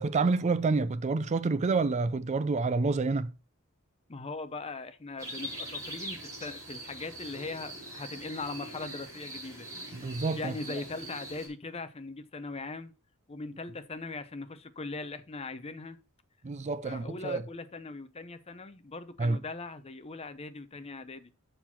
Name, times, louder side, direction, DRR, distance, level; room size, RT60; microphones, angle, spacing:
voice 1, 0.0-3.3 9.9-10.8 16.4-17.4 19.2-19.4, right 3 dB, 30° right, 0.4 m, -28 dB
voice 2, 4.1-9.7 9.9-12.9 13.3-16.0 16.8-21.3, left 3 dB, 30° left, 0.7 m, -40 dB
sound 1, 5.2-11.5, right 1 dB, 15° right, 3.9 m, -42 dB
6.7 x 6.0 x 5.8 m
head